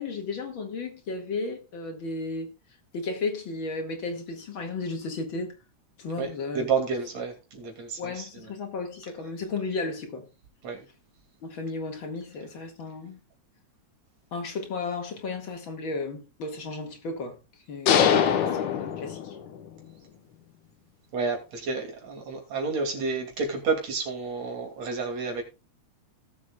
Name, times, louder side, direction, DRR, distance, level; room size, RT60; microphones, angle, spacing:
voice 1, 0.0-2.5 2.9-5.6 6.0-6.7 8.0-10.3 11.4-13.2 14.3-17.4 17.7-19.4, left 3 dB, 45° left, 2.4 m, -34 dB
voice 2, 6.5-8.5 10.6-10.9 21.1-25.4, right 4 dB, 65° right, 3.7 m, -30 dB
sound 1, 17.9-19.7, left 8 dB, 90° left, 2.6 m, -23 dB
18.0 x 7.5 x 2.3 m
omnidirectional pair, 3.3 m